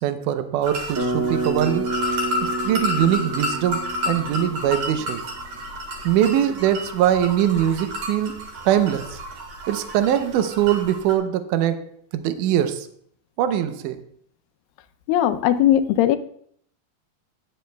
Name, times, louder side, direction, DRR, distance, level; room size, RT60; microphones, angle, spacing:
voice 1, 0.0-2.2 2.4-5.2 6.0-9.2 9.7-12.9 13.4-14.0, right 11 dB, 75° right, 9 dB, 2.0 m, -22 dB
sound 1, 0.6-11.1, left 1 dB, 60° right, 2.9 m, -31 dB
Bass guitar, 1.0-5.1, right 3 dB, 35° right, 1.5 m, -29 dB
voice 2, 15.1-16.2, left 11 dB, 80° left, 10 dB, 2.3 m, -18 dB
17.0 x 8.4 x 2.3 m, 0.63 s
omnidirectional pair, 4.2 m